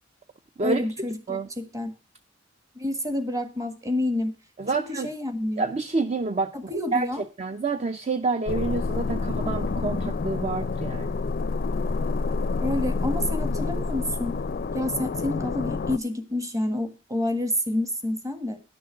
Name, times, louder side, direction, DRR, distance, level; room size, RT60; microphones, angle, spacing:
voice 1, 0.6-1.9 2.7-4.3 4.7-5.6 6.5-7.2 12.6-14.4 14.7-18.6, left 1 dB, 15° right, 8 dB, 1.6 m, -29 dB
voice 2, 4.6-5.1 5.6-7.1 7.4-11.1, right 3 dB, 35° right, 9 dB, 0.6 m, -28 dB
sound 1, 8.5-16.0, left 3 dB, 45° left, 0.4 m, -28 dB
11.0 x 6.3 x 6.4 m, 0.34 s
head